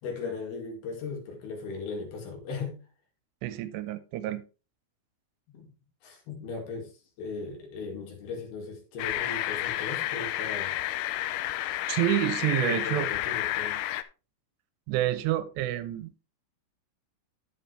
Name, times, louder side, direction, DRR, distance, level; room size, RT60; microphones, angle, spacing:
voice 1, 0.0-2.8 5.5-5.7 6.0-6.9 7.2-10.8 12.6-13.8, left 4 dB, 65° left, 3.9 m, -37 dB
voice 2, 3.4-4.4 11.9-13.1 14.9-16.1, right 14 dB, 80° right, 2.8 m, -28 dB
sound 1, 9.0-14.0, left 14 dB, 85° left, 2.3 m, -31 dB
10.5 x 7.4 x 3.3 m
omnidirectional pair, 5.0 m